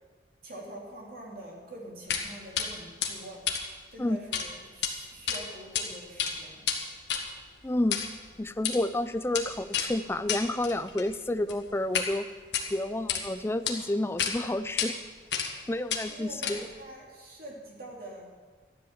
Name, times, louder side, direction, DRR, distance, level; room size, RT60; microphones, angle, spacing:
voice 1, 0.4-3.5 3.9-6.7 16.1-18.3, right 1 dB, 55° right, -2 dB, 2.8 m, -45 dB
sound 1, 2.1-2.3 2.6-2.7 3.0-4.5 4.7-4.9 5.3-5.8 6.1-12.1 12.4-13.2 13.7-13.8 14.2-14.3 14.8-14.9 15.3-15.6 15.9-16.8, left 8 dB, 80° left, 1.7 m, -32 dB
voice 2, 7.6-8.0 8.4-12.3 12.7-14.9 15.7-16.6, left 1 dB, 15° left, 12 dB, 0.4 m, -30 dB
13.0 x 10.5 x 7.2 m, 1.4 s
head